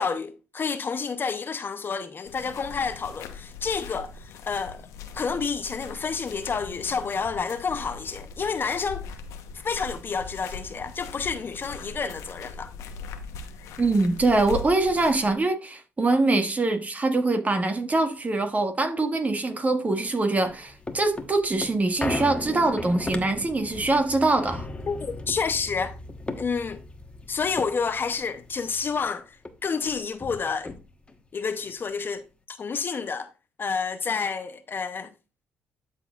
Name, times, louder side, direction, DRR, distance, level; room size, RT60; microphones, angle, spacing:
voice 1, 0.0-4.8 5.1-9.0 9.5-12.7 24.9-26.0 26.4-26.8 27.3-29.4 29.6-30.8 31.3-33.3 33.6-35.1, left 5 dB, 40° left, 0.7 m, -29 dB
sound 1, 2.3-15.3, left 5 dB, 75° left, 0.9 m, -40 dB
voice 2, 13.8-24.7, right 2 dB, 30° right, 1.7 m, -23 dB
sound 2, 20.4-29.1 29.4-29.5 29.8-31.2 31.7-31.8, left 2 dB, 20° left, 1.2 m, -37 dB
12.0 x 4.4 x 2.4 m
supercardioid pair, 60°, 5 cm